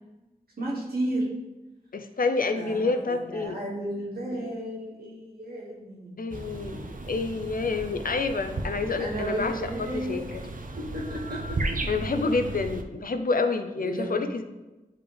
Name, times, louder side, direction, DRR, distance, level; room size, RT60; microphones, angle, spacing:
voice 1, 0.6-1.3 2.5-6.4 6.9-7.0 8.8-10.3 10.8-11.8 13.8-14.2, right 1 dB, 85° right, -5 dB, 2.0 m, -33 dB
voice 2, 1.9-3.6 6.2-6.8 7.1-9.5 9.9-10.2 11.9-14.4, left 3 dB, 65° left, 8 dB, 0.6 m, -28 dB
sound 1, 6.3-12.8, right 2 dB, 60° right, 0.6 m, -35 dB
8.9 x 3.5 x 3.4 m, 1.1 s
cardioid pair, 45°, 16 cm